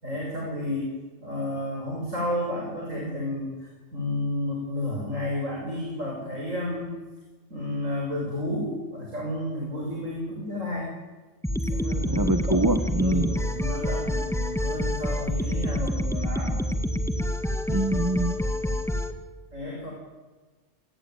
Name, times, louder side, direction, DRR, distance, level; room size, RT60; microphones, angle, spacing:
voice 1, 0.0-0.9 1.2-7.0 7.5-10.9 11.7-12.6 13.0-16.6 19.5-19.9, left 1 dB, 80° right, -1 dB, 6.6 m, -31 dB
sound 1, 11.4-19.1, equal, ahead, 1.8 m, -27 dB
voice 2, 12.2-13.3 17.7-18.4, right 1 dB, 15° right, 8 dB, 1.2 m, -24 dB
28.0 x 20.5 x 9.3 m, 1.2 s
omnidirectional pair, 1.3 m